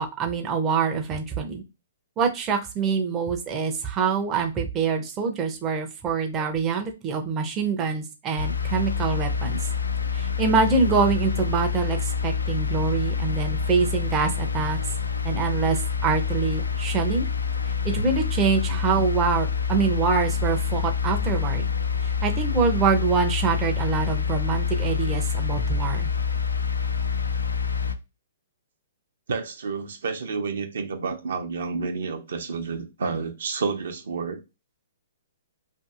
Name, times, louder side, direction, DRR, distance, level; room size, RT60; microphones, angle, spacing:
voice 1, 0.0-1.6 2.2-9.6 10.1-14.8 15.2-17.3 17.8-21.7 22.0-26.1, right 5 dB, 25° right, 3 dB, 0.5 m, -25 dB
sound 1, 8.4-27.9, left 6 dB, 85° left, 0.4 m, -27 dB
voice 2, 18.7-19.0 29.3-34.4, right 4 dB, 70° right, 5 dB, 0.6 m, -30 dB
2.6 x 2.5 x 2.4 m, 0.26 s
figure-of-eight pair, 125°, 0 cm